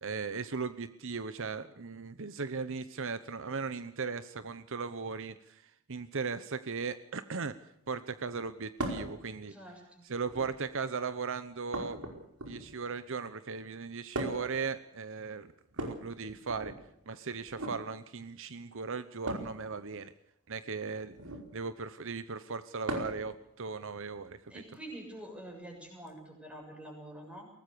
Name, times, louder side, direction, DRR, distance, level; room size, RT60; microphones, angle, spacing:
voice 1, 0.0-7.5 7.9-9.5 10.0-12.0 12.5-16.7 17.1-20.1 20.5-21.2 21.5-24.5, right 5 dB, 60° right, 12 dB, 0.9 m, -37 dB
sound 1, 8.8-9.1 10.2-10.7 11.7-12.8 14.1-14.6 15.7-16.8 17.5-17.8 19.2-19.6 21.1-21.5 22.9-23.3 24.7-24.8 26.1-26.2, right 1 dB, 80° right, 5.0 m, -38 dB
voice 2, 9.5-10.0 24.5-27.5, right 1 dB, 5° right, 1 dB, 7.0 m, -46 dB
23.0 x 18.5 x 6.9 m, 0.76 s
head